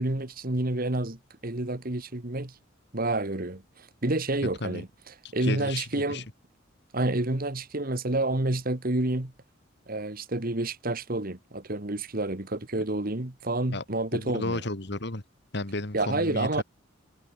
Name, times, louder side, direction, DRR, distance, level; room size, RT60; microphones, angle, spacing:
voice 1, 0.0-2.5 2.9-4.9 5.3-6.3 6.9-9.3 9.9-14.6 15.9-16.6, right 2 dB, 50° right, 1.9 m, -29 dB
voice 2, 5.4-6.2 13.7-13.8 14.1-15.2 15.5-16.6, left 2 dB, 60° left, 2.6 m, -33 dB
head